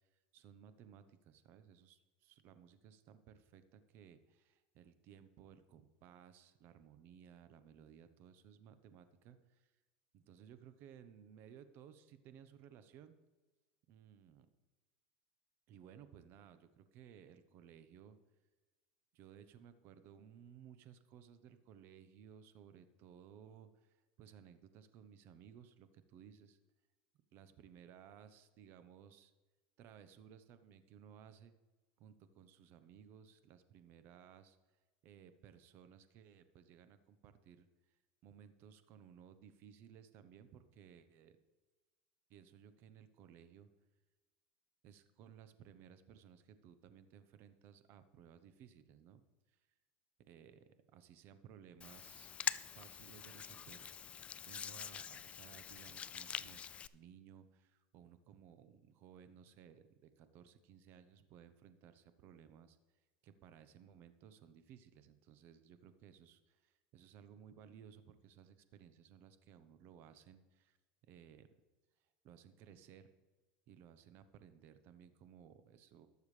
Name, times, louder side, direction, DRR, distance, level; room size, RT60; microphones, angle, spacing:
voice 1, 0.3-9.7 10.1-13.2 13.9-14.5 15.7-18.2 19.1-26.6 27.3-29.3 29.8-31.6 32.0-34.6 35.0-37.7 38.2-41.4 42.3-43.7 44.8-49.2 50.3-52.3 52.7-53.8 54.4-56.6 56.9-62.8 63.2-70.8 71.1-71.5 72.2-73.1 73.7-76.1, right 8 dB, 50° right, 11 dB, 0.9 m, -59 dB
Hands, 51.8-56.9, left 8 dB, 25° left, 0.3 m, -44 dB
19.0 x 7.1 x 3.3 m, 1.3 s
supercardioid pair, 125°, 5 cm